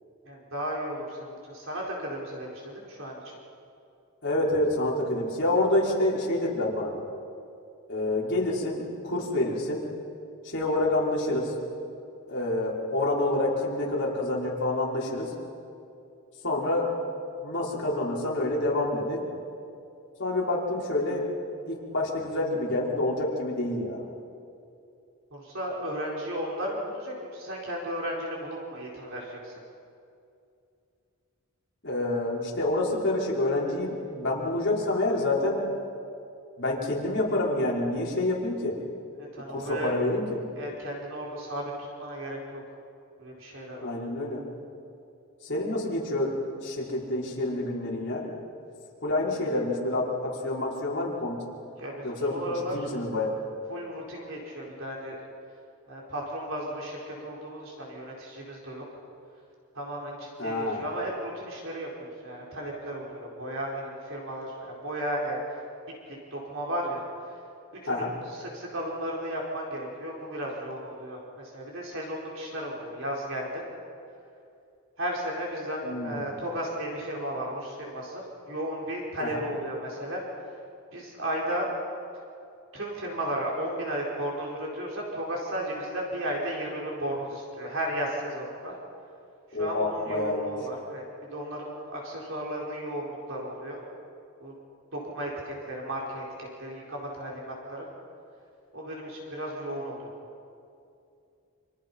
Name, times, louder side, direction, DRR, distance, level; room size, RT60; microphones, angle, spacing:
voice 1, 0.2-3.2 25.3-29.5 39.2-39.9 40.5-42.6 43.2-43.9 51.8-52.9 53.7-55.2 55.9-58.8 59.7-65.4 66.1-67.3 67.8-73.6 75.0-80.2 80.9-81.7 82.7-88.8 89.6-91.0 91.3-93.8 94.4-94.5 94.9-97.9 98.7-100.1, right 1 dB, 60° right, -3 dB, 4.8 m, -34 dB
voice 2, 4.2-6.9 7.9-9.9 10.4-11.5 12.3-15.3 16.4-16.9 17.4-19.3 20.2-21.3 21.7-24.0 31.8-35.6 36.6-38.8 39.5-40.4 43.8-44.4 45.4-48.3 49.0-51.4 52.0-53.4 60.4-60.9 67.8-68.1 75.8-76.3 79.2-79.4 89.5-90.5, left 2 dB, 50° left, -5 dB, 5.6 m, -28 dB
30.0 x 28.0 x 5.8 m, 2.6 s
head